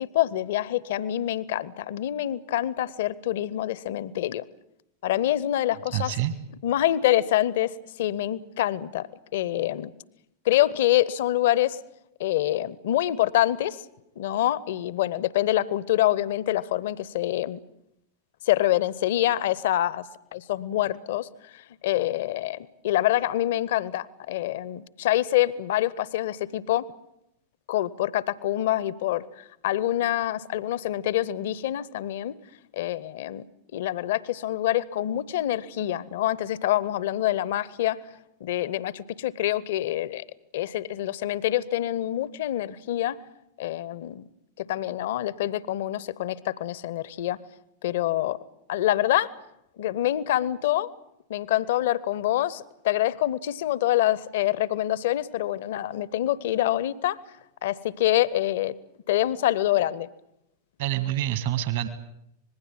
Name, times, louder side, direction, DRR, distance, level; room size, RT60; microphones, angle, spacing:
voice 1, 0.0-4.4 5.0-6.1 6.6-9.1 9.3-9.9 10.4-11.8 12.2-13.8 14.2-17.6 18.5-26.9 27.7-32.4 32.7-33.4 33.7-38.0 38.4-40.2 40.5-43.2 43.6-44.2 44.6-47.4 47.8-48.4 48.7-49.3 49.8-50.9 51.3-57.2 57.6-58.8 59.1-60.1, left 13 dB, 55° left, 21 dB, 0.8 m, -26 dB
voice 2, 5.9-6.3 60.8-61.9, right 12 dB, 55° right, 12 dB, 1.8 m, -27 dB
26.0 x 20.0 x 7.7 m, 0.80 s
figure-of-eight pair, 90°, 0 cm